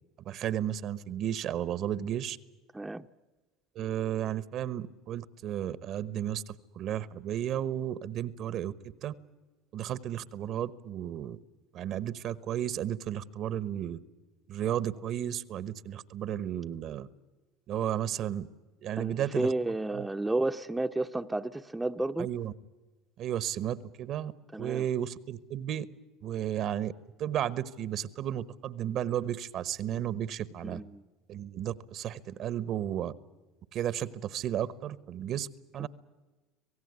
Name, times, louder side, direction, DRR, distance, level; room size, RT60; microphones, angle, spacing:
voice 1, 0.2-2.4 3.7-8.7 9.0-9.1 9.7-11.4 11.7-14.0 14.5-17.1 17.7-18.5 18.8-19.5 19.9-20.1 22.2-22.5 23.2-24.3 24.6-25.9 26.2-26.9 27.2-30.8 31.3-33.1 33.7-35.5 35.7-35.9, right 11 dB, 55° right, 18 dB, 1.1 m, -33 dB
voice 2, 2.7-3.1 19.0-22.3 24.5-24.9 30.6-31.0 35.8-35.9, right 2 dB, 10° right, 6 dB, 0.8 m, -32 dB
26.0 x 17.5 x 9.6 m, 1.2 s
hypercardioid pair, 90°, 0 cm